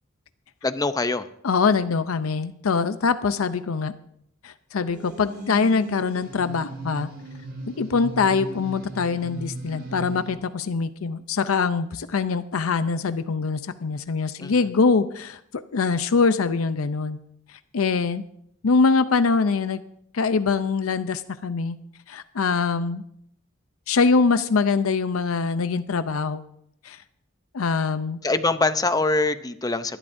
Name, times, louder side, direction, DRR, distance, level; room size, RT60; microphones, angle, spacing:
voice 1, 0.6-1.3 14.4-14.7 28.2-30.0, left 3 dB, 20° left, 11 dB, 0.6 m, -24 dB
voice 2, 1.4-3.9 4.4-7.1 7.8-17.2 17.7-18.2 18.6-19.8 20.1-21.8 22.1-23.0 23.9-26.4 26.8-27.0 27.5-28.2, left 4 dB, 85° left, 12 dB, 0.6 m, -23 dB
sound 1, 4.9-10.3, right 2 dB, 55° right, 3.2 m, -37 dB
23.5 x 12.0 x 2.6 m, 0.71 s
head